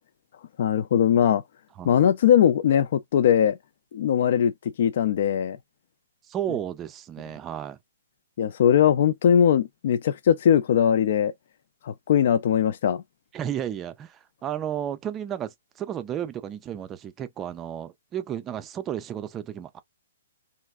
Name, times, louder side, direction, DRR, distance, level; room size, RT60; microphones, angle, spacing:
voice 1, 0.6-1.4 1.9-3.6 3.9-5.6 8.4-11.3 11.8-13.0, left 9 dB, 55° left, 0.3 m, -20 dB
voice 2, 6.3-7.8 13.3-19.8, right 10 dB, 20° right, 0.4 m, -33 dB
3.3 x 2.4 x 2.4 m
hypercardioid pair, 145°, 0 cm